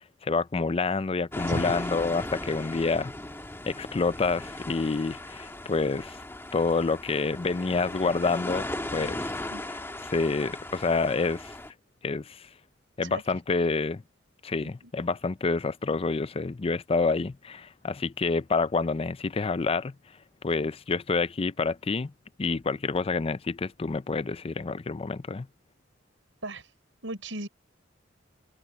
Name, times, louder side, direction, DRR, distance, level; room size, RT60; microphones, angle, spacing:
voice 1, 0.2-3.1 3.7-6.2 6.5-8.7 8.9-9.3 10.0-11.5 12.0-12.5 13.0-14.0 14.4-19.9 20.4-22.1 22.4-25.5, left 4 dB, 30° left, 0.4 m, -28 dB
sound 1, 1.3-11.7, left 1 dB, 15° left, 1.7 m, -37 dB
voice 2, 1.5-1.9 9.5-9.6 13.0-13.4 14.6-14.9 26.4-26.7 27.0-27.5, right 1 dB, 80° right, 5.6 m, -36 dB
head